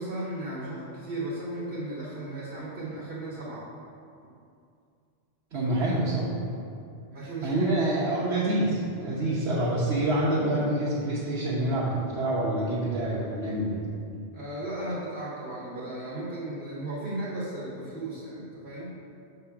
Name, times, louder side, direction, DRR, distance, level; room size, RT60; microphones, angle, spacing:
voice 1, 0.0-3.6 7.1-7.6 14.3-18.9, right 1 dB, 65° right, -7 dB, 1.5 m, -35 dB
voice 2, 5.5-6.3 7.4-13.8, right 1 dB, 90° right, -7 dB, 1.3 m, -26 dB
6.6 x 3.7 x 5.9 m, 2.4 s
omnidirectional pair, 1.1 m